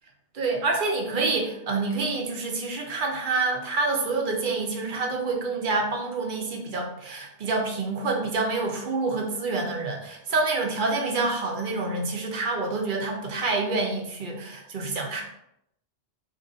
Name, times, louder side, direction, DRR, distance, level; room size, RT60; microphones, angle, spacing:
voice 1, 0.3-15.2, right 3 dB, 55° right, 1 dB, 0.7 m, -27 dB
2.6 x 2.5 x 3.8 m, 0.78 s
omnidirectional pair, 1.1 m